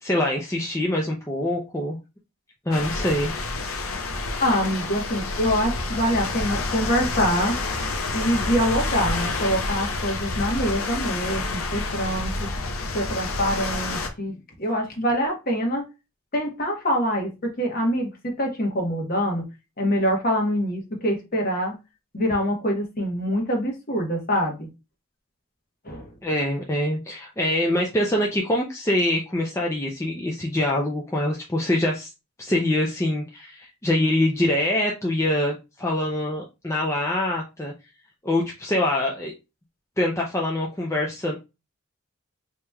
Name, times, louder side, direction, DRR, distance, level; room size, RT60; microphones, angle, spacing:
voice 1, 0.0-2.0 2.7-3.3 26.2-32.1 32.4-37.7 38.2-39.3 40.0-41.4, left 1 dB, 15° left, -1 dB, 0.4 m, -24 dB
sound 1, 2.7-14.1, left 3 dB, 80° left, 0.7 m, -28 dB
voice 2, 4.4-7.5 8.1-12.5 12.9-15.8 16.3-19.4 19.8-21.7 22.1-24.7 25.8-26.1, equal, 45° left, 1 dB, 1.1 m, -25 dB
4.8 x 2.9 x 2.3 m, 0.27 s
head